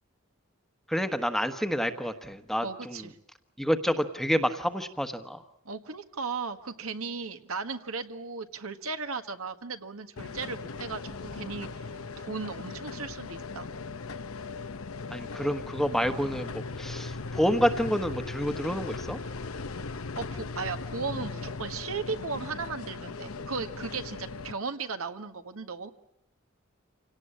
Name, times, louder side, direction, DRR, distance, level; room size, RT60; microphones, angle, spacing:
voice 1, 0.9-3.1 3.6-5.4 15.1-19.2, equal, ahead, 8 dB, 1.3 m, -28 dB
voice 2, 2.6-3.2 5.7-11.9 12.2-13.7 20.2-25.9, right 4 dB, 75° right, 7 dB, 1.6 m, -36 dB
sound 1, 10.2-24.5, left 4 dB, 75° left, 1.0 m, -38 dB
27.0 x 18.0 x 8.7 m, 0.80 s
head